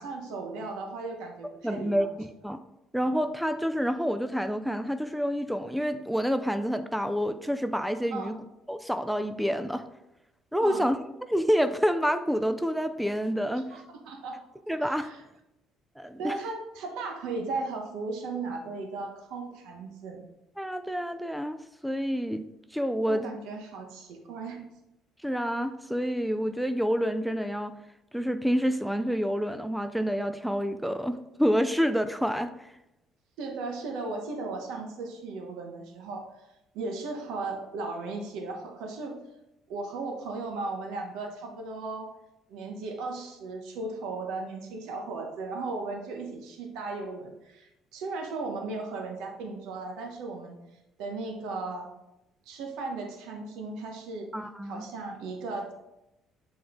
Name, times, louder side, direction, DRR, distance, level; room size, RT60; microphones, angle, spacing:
voice 1, 0.0-2.1 8.1-8.3 10.6-10.9 13.7-14.4 14.8-15.2 16.2-20.2 23.1-24.7 33.4-36.3 36.7-39.2 39.7-42.1 42.5-50.6 51.0-51.9 52.5-54.3 54.6-55.7, right 3 dB, 85° right, 2 dB, 1.0 m, -36 dB
voice 2, 1.6-2.6 2.9-8.4 8.7-9.8 10.5-11.0 11.3-13.6 14.7-15.1 16.0-16.4 20.6-21.6 21.8-22.5 22.7-23.3 25.2-27.8 28.1-32.7 54.3-54.9, equal, ahead, 9 dB, 0.3 m, -28 dB
7.8 x 3.8 x 3.7 m, 0.90 s
cardioid pair, 150°, 0 cm